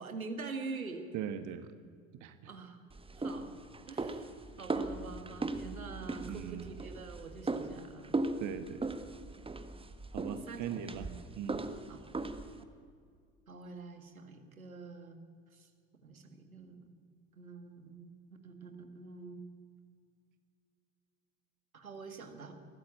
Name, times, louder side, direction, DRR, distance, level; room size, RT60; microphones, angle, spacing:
voice 1, 0.0-1.0 2.4-2.8 3.2-3.5 3.9-4.3 4.6-8.2 10.5-11.1 11.9-12.0 13.5-15.2 15.5-15.7 16.0-16.9 17.4-19.4 21.7-22.5, right 4 dB, 85° right, 6 dB, 1.9 m, -45 dB
voice 2, 1.1-1.7 2.1-2.5 6.3-6.7 8.4-8.9 10.1-11.1 11.4-11.6, right 9 dB, 45° right, 11 dB, 1.4 m, -40 dB
sound 1, 2.9-12.6, right 3 dB, 15° right, 1.5 m, -38 dB
22.0 x 14.5 x 8.8 m, 2.1 s
figure-of-eight pair, 65°, 41 cm